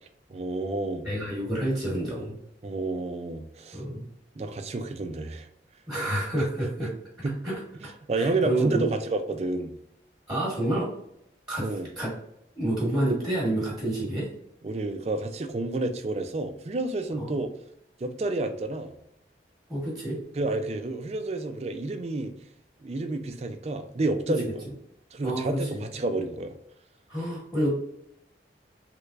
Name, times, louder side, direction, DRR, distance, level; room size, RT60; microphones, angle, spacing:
voice 1, 0.3-1.1 2.6-3.8 4.4-5.5 7.2-7.4 7.8-9.7 11.6-11.9 14.6-17.5 18.0-18.9 20.4-22.3 22.8-24.5 25.1-26.5, right 2 dB, 35° right, 7 dB, 0.4 m, -30 dB
voice 2, 1.0-2.4 3.7-4.1 5.9-6.9 7.4-7.6 8.2-8.9 10.3-10.9 11.5-12.1 12.5-14.3 17.2-17.4 19.7-20.2 24.4-24.5 25.2-25.8 27.1-27.7, right 1 dB, 5° right, -5 dB, 1.1 m, -28 dB
3.3 x 3.2 x 2.4 m, 0.76 s
head